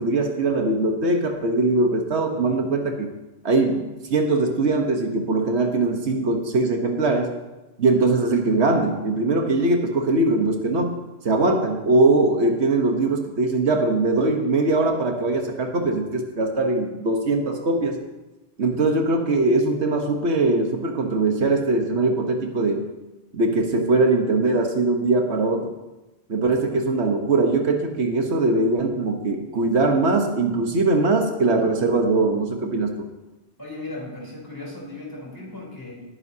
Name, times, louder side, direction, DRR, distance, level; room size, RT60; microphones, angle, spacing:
voice 1, 0.0-3.1 3.4-7.3 7.8-11.0 11.2-18.0 18.6-22.9 23.3-25.7 26.3-33.1, right 2 dB, 80° right, 4 dB, 1.5 m, -21 dB
voice 2, 33.6-36.0, left 2 dB, 20° left, -4 dB, 3.7 m, -36 dB
19.0 x 9.7 x 2.8 m, 1.0 s
omnidirectional pair, 1.1 m